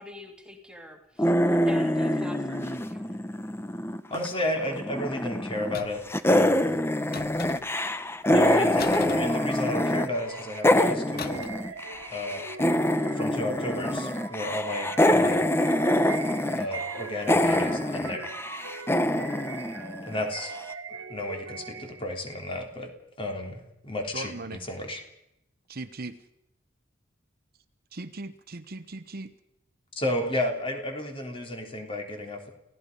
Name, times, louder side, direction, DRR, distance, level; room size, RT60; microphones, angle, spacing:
voice 1, 0.0-3.1, left 1 dB, 5° right, 2 dB, 2.7 m, -46 dB
sound 1, 1.2-4.3 4.6-5.8 6.1-10.1 10.3-20.4, left 1 dB, 10° left, 0.9 m, -25 dB
voice 2, 4.1-6.0 6.3-6.7 8.3-11.5 12.1-12.5 13.0-15.4 16.5-18.3 20.0-20.6 21.1-22.9 23.2-25.0 29.9-32.5, left 1 dB, 30° left, 3 dB, 3.4 m, -32 dB
sound 2, 5.7-6.2 7.1-7.9 8.8-10.0 11.2-11.7 11.9-12.2, left 5 dB, 50° left, 1.1 m, -40 dB
sound 3, 8.4-22.1, right 5 dB, 85° right, 1.7 m, -42 dB
voice 3, 24.1-24.6 25.7-26.2 27.9-29.3, right 2 dB, 50° right, 10 dB, 0.9 m, -38 dB
29.5 x 17.0 x 5.4 m, 0.81 s
head